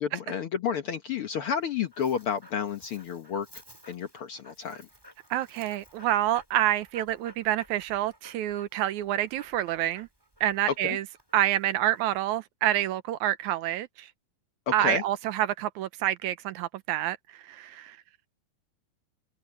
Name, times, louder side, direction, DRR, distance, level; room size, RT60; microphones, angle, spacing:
voice 1, 0.0-3.5 3.9-4.9 10.8-11.0 14.7-15.0, left 7 dB, 60° left, 1.6 m, -31 dB
Dog, 1.4-12.2, equal, 5° right, 3.7 m, -54 dB
voice 2, 5.3-10.1 10.4-11.0 11.3-14.1 14.7-17.2 17.5-18.0, right 13 dB, 75° right, 2.0 m, -27 dB
omnidirectional pair, 3.6 m